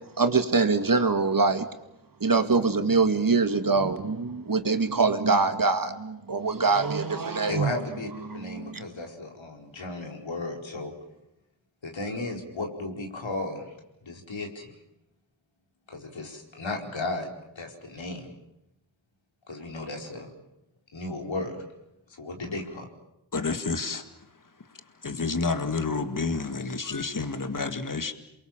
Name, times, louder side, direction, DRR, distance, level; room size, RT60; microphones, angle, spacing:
voice 1, 0.2-1.7 2.2-7.7 8.2-8.8, right 4 dB, 45° right, 8 dB, 2.2 m, -24 dB
voice 2, 7.5-10.9 11.8-13.7 14.0-14.7 15.9-17.3 17.5-18.3 19.5-20.3 20.9-21.6 22.1-22.8, left 2 dB, 75° left, 2 dB, 4.9 m, -35 dB
voice 3, 23.3-24.1 24.7-28.1, left 4 dB, 40° left, 9 dB, 2.2 m, -30 dB
28.0 x 23.0 x 7.5 m, 0.89 s
cardioid pair, 50°, 47 cm